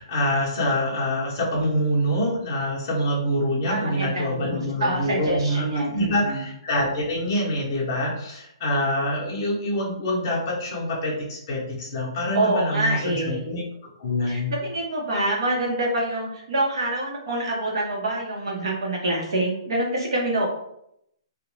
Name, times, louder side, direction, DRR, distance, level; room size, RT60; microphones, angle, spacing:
voice 1, 0.0-5.7 5.9-13.6 14.0-14.5, left 1 dB, 30° left, -4 dB, 0.7 m, -25 dB
voice 2, 3.6-6.4 12.2-13.4 14.3-20.5, right 1 dB, 55° right, -1 dB, 0.7 m, -26 dB
2.5 x 2.1 x 3.0 m, 0.76 s
hypercardioid pair, 180°, 3 cm